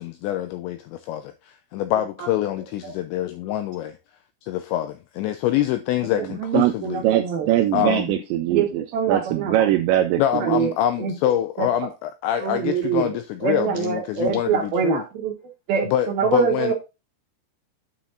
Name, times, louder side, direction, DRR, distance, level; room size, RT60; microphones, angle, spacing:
voice 1, 0.0-4.0 4.4-7.0 7.7-8.1 10.2-15.0 15.8-16.7, left 12 dB, 85° left, 2.6 m, -25 dB
voice 2, 6.4-7.5 8.5-9.5 10.3-10.7 11.0-11.1 11.6-11.7 12.4-13.1 13.4-15.3 15.7-16.7, right 7 dB, 65° right, 2.5 m, -24 dB
voice 3, 7.0-10.6, right 13 dB, 90° right, 2.6 m, -21 dB
9.3 x 7.2 x 2.4 m
omnidirectional pair, 5.8 m